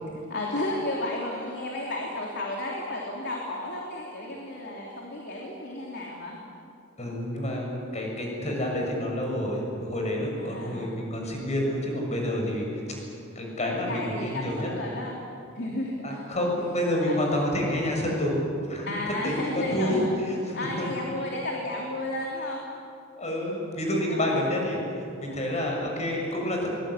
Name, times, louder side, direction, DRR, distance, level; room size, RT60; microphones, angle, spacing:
voice 1, 0.3-6.4 10.4-11.0 13.9-15.2 15.5-16.2 17.1-17.2 18.9-20.1 20.5-22.6 24.1-24.5 25.3-25.4, left 1 dB, 60° left, -1 dB, 3.2 m, -33 dB
voice 2, 7.0-12.7 13.3-14.7 16.0-18.9 19.2-20.0 20.4-20.9 23.2-26.7, left 1 dB, 35° left, 0 dB, 6.7 m, -28 dB
23.0 x 21.0 x 9.9 m, 2.6 s
head